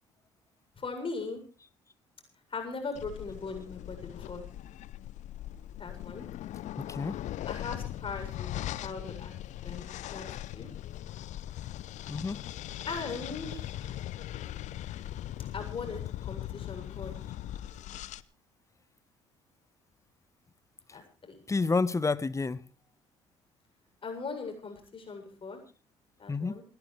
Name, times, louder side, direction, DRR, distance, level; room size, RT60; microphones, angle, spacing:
voice 1, 0.8-1.4 2.5-4.5 5.8-6.2 7.5-9.3 9.6-10.7 12.9-14.0 15.5-17.2 20.9-21.4 24.0-25.6 26.2-26.6, left 4 dB, 35° left, 7.4 m, -39 dB
sound 1, 2.9-18.2, left 13 dB, 55° left, 0.8 m, -40 dB
voice 2, 6.8-7.2 12.1-12.4 21.5-22.6 26.3-26.6, left 4 dB, 20° left, 1.1 m, -29 dB
29.0 x 12.0 x 3.3 m
hypercardioid pair, 55°, 15 cm